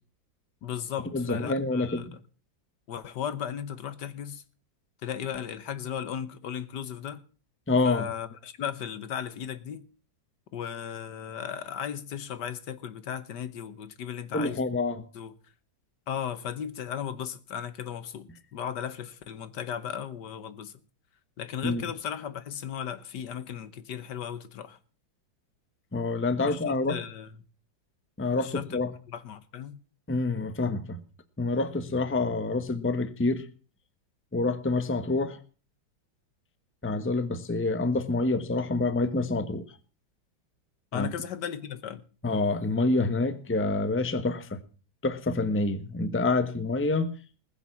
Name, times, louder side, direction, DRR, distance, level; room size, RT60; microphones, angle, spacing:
voice 1, 0.6-2.2 2.9-4.4 5.0-7.2 7.8-9.8 10.5-14.6 15.1-15.3 16.1-20.7 21.4-24.8 26.4-27.3 28.4-28.8 29.1-29.8 40.9-42.0, left 8 dB, 65° left, 1.5 m, -36 dB
voice 2, 1.1-2.0 7.7-8.1 14.3-15.0 21.6-21.8 25.9-27.0 28.2-28.9 30.1-31.0 31.4-33.4 34.3-35.4 36.8-39.6 40.9-41.1 42.2-44.6 45.0-47.1, left 3 dB, 10° left, 0.8 m, -27 dB
20.5 x 7.1 x 7.2 m
omnidirectional pair, 2.1 m